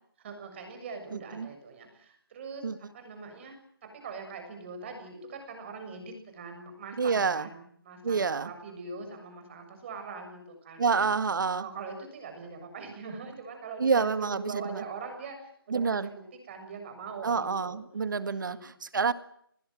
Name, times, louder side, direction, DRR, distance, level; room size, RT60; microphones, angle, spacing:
voice 1, 0.2-3.6 4.0-11.1 11.6-17.8 18.2-18.7, right 4 dB, 30° right, 6 dB, 6.9 m, -42 dB
voice 2, 1.1-1.5 2.6-2.8 7.0-7.5 8.0-8.5 10.8-11.7 13.8-14.8 15.7-16.1 17.2-19.1, right 5 dB, 55° right, 13 dB, 1.8 m, -28 dB
27.0 x 20.5 x 7.8 m, 0.68 s
figure-of-eight pair, 160°, 12 cm